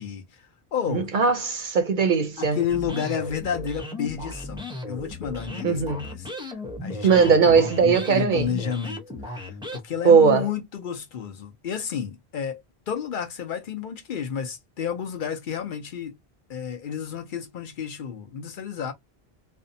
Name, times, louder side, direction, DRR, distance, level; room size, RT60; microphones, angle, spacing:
voice 1, 0.0-1.1 2.4-16.1 16.5-18.9, left 7 dB, 60° left, 0.7 m, -31 dB
voice 2, 0.9-2.6 5.6-6.1 7.0-8.5 10.0-10.5, right 5 dB, 60° right, 0.6 m, -19 dB
sound 1, 2.7-9.8, left 2 dB, 5° right, 0.4 m, -36 dB
2.6 x 2.1 x 2.5 m
omnidirectional pair, 1.0 m